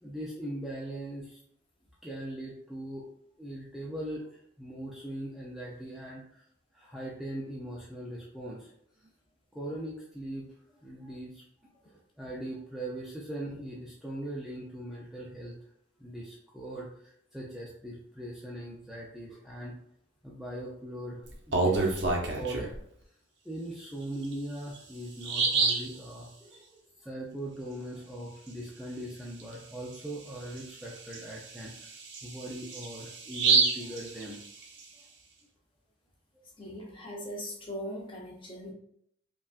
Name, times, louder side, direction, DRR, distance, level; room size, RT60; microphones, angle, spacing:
voice 1, 0.0-1.4 2.0-3.1 3.4-4.3 4.6-6.4 6.7-8.7 9.0-9.1 9.5-10.5 10.8-11.4 11.8-15.5 16.0-19.8 20.2-22.7 23.4-31.9 32.2-34.4, right 1 dB, ahead, -5 dB, 0.4 m, -40 dB
Bird vocalization bird call bird song, 21.3-22.8 24.2-24.3 24.8-24.9 25.2-25.9 29.4-29.5 29.9-30.0 30.6-34.8, right 4 dB, 60° right, 0.7 m, -28 dB
voice 2, 36.6-38.7, equal, 25° left, -1 dB, 0.8 m, -40 dB
5.3 x 2.3 x 2.4 m, 0.70 s
head